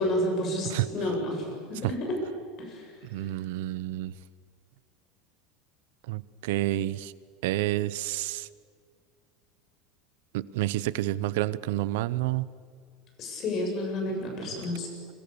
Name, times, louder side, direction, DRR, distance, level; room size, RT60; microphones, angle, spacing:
voice 1, 0.0-2.2 2.6-2.9 13.2-14.9, left 1 dB, 35° left, 2 dB, 7.5 m, -30 dB
voice 2, 3.1-4.1 6.1-7.1 7.4-8.5 10.3-12.5 14.4-14.5, right 16 dB, 75° right, 18 dB, 0.9 m, -29 dB
29.0 x 25.0 x 7.0 m, 2.1 s
supercardioid pair, 155°, 0 cm